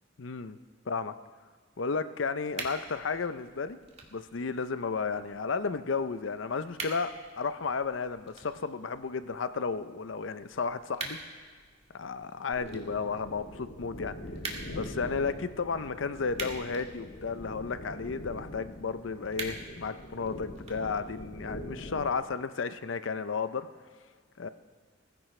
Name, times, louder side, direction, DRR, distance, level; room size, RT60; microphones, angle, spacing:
voice 1, 0.2-0.6 0.9-1.1 1.8-3.8 4.1-7.1 7.4-11.2 11.9-14.1 14.7-23.7 24.4-24.5, left 5 dB, 90° left, 12 dB, 0.6 m, -33 dB
sound 1, 2.4-21.4, right 3 dB, 35° right, 1.8 m, -46 dB
sound 2, 12.5-22.2, equal, 70° left, 1.5 m, -43 dB
20.5 x 15.0 x 3.3 m, 1.5 s
head